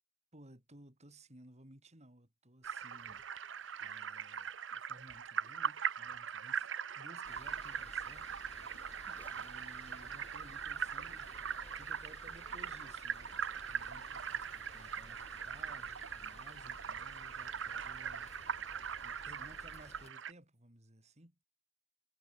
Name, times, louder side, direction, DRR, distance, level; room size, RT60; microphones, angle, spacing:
voice 1, 0.3-3.2 3.5-6.7 7.0-9.0 9.3-18.3 18.6-21.4, right 1 dB, 35° right, 4.6 m, -59 dB
sound 1, 2.6-20.3, right 7 dB, 70° right, 0.8 m, -41 dB
sound 2, 7.2-20.1, left 2 dB, 35° left, 1.4 m, -56 dB
sound 3, 8.9-14.6, left 1 dB, 10° left, 4.8 m, -67 dB
head